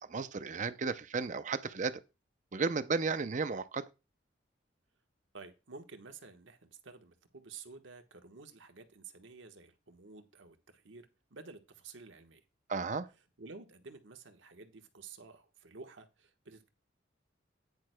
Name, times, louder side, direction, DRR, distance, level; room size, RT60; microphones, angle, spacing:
voice 1, 0.1-2.0 2.5-3.8 12.7-13.1, right 4 dB, 40° right, 0.5 m, -34 dB
voice 2, 5.3-12.4 13.4-16.7, right 4 dB, 85° right, 1.2 m, -52 dB
10.5 x 9.6 x 2.2 m
head